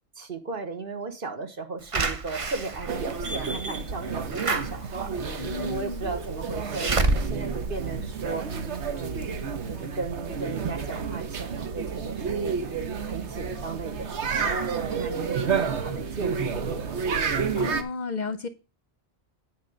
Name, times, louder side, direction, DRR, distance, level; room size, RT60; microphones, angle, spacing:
voice 1, 0.2-8.6 8.9-9.4 9.7-12.6 13.0-16.8, right 4 dB, 55° right, 1.4 m, -36 dB
Slam / Alarm, 1.9-8.7 9.2-9.3 9.6-9.7, right 3 dB, 35° right, 0.7 m, -30 dB
sound 1, 2.9-17.8, right 5 dB, 90° right, 1.3 m, -30 dB
voice 2, 5.4-6.1 17.5-18.5, left 4 dB, 50° left, 0.7 m, -33 dB
9.2 x 4.7 x 6.3 m
omnidirectional pair, 1.1 m